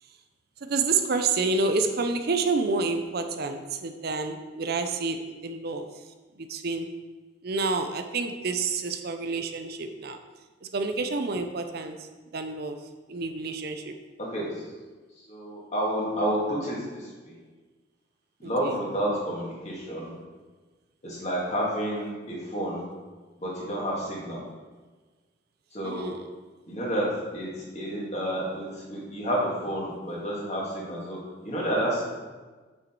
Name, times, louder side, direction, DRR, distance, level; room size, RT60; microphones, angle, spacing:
voice 1, 0.6-5.9 6.4-6.9 7.4-10.2 10.6-12.8 13.1-13.9 18.4-18.8 25.8-26.2, right 4 dB, 55° right, 7 dB, 0.6 m, -29 dB
voice 2, 14.2-14.5 15.3-17.4 18.4-20.1 21.0-22.9 23.4-24.4 25.7-26.1 26.7-27.1 27.3-32.0, equal, 35° left, -4 dB, 2.1 m, -30 dB
6.3 x 6.0 x 4.6 m, 1.3 s
head